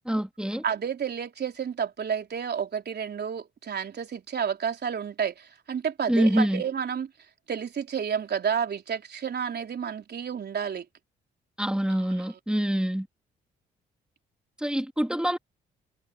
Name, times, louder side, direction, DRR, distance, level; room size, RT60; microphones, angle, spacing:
voice 1, 0.1-0.6 6.1-6.6 11.6-13.1 14.6-15.4, equal, 5° right, 3.7 m, -25 dB
voice 2, 0.6-7.1 7.5-10.8, right 7 dB, 50° right, 4.0 m, -30 dB
hypercardioid pair, 50°, 21 cm